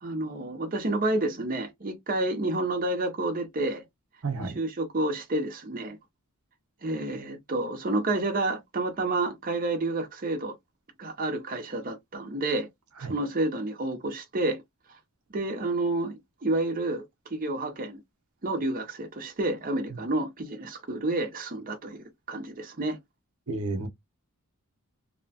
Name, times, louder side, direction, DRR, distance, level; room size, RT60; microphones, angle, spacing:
voice 1, 0.0-3.8 4.4-6.0 6.8-10.6 11.0-12.7 13.0-14.6 15.3-17.0 17.3-18.0 18.4-23.0, right 2 dB, 40° right, 0.7 m, -29 dB
voice 2, 4.2-4.6 13.0-13.1 23.5-23.9, right 3 dB, 75° right, 0.8 m, -31 dB
2.8 x 2.1 x 2.7 m
head